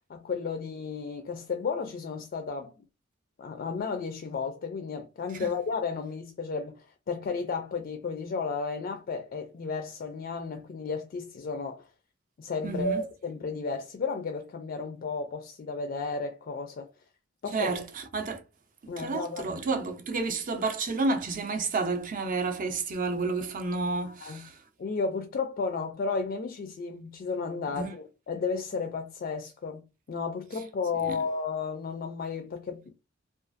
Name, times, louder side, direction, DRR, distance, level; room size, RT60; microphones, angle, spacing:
voice 1, 0.1-2.7 3.4-11.8 12.4-16.9 17.4-17.7 18.9-19.6 24.0-24.4 24.8-29.8 30.1-32.9, left 4 dB, 45° left, 0.3 m, -33 dB
voice 2, 12.6-13.0 17.5-18.4 19.0-24.6 27.7-27.9 31.0-31.2, right 3 dB, 40° right, 0.5 m, -30 dB
2.4 x 2.3 x 2.5 m
head